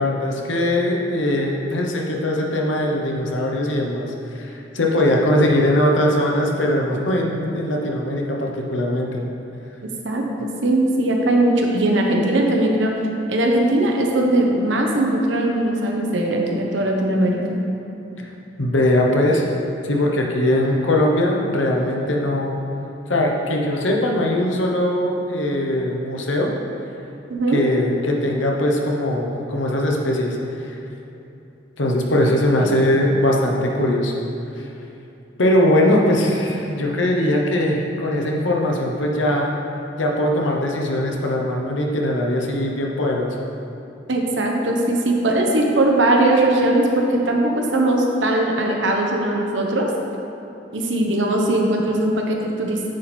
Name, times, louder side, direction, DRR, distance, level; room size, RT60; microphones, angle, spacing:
voice 1, 0.0-9.2 18.2-18.3 18.6-19.4 19.8-22.6 23.1-26.5 27.5-30.8 31.8-34.1 35.4-39.6 40.0-43.4, left 1 dB, 85° left, 0 dB, 1.0 m, -20 dB
voice 2, 10.0-12.9 13.3-17.6 27.3-27.6 32.6-32.8 44.1-49.9 50.7-52.9, right 1 dB, 80° right, 1 dB, 1.0 m, -20 dB
9.4 x 4.4 x 4.4 m, 2.8 s
head